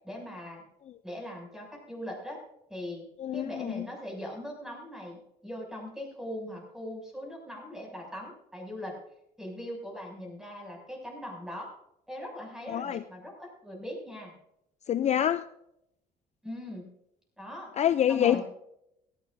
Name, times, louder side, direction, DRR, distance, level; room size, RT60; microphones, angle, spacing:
voice 1, 0.0-0.6 1.0-2.4 2.7-3.0 3.3-9.0 9.4-11.7 12.1-14.3 16.4-16.8 17.4-17.7 18.1-18.4, left 1 dB, 5° right, 0 dB, 6.8 m, -40 dB
voice 2, 3.2-3.9 12.7-13.0 14.9-15.5 17.8-18.4, left 10 dB, 40° left, 13 dB, 0.5 m, -26 dB
18.5 x 15.5 x 2.7 m, 0.79 s
cardioid pair, 110°, 17 cm